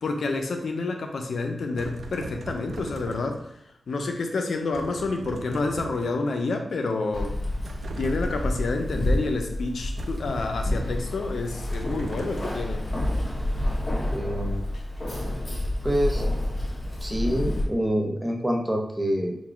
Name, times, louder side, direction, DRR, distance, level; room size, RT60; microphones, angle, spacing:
voice 1, 0.0-3.5 3.9-7.3 8.0-12.8, left 3 dB, 80° left, 4 dB, 0.5 m, -29 dB
sound 1, 1.8-3.5 4.7-6.3 7.6-8.6 10.0-10.4 11.7-12.7, right 4 dB, 85° right, 0.4 m, -40 dB
Keys jangling, 7.1-17.6, left 1 dB, 40° left, 1.2 m, -29 dB
voice 2, 14.1-14.6 15.8-16.3 17.0-19.4, equal, 15° right, 1 dB, 0.7 m, -26 dB
3.9 x 2.3 x 4.5 m, 0.79 s
wide cardioid pair, 85°, 0 cm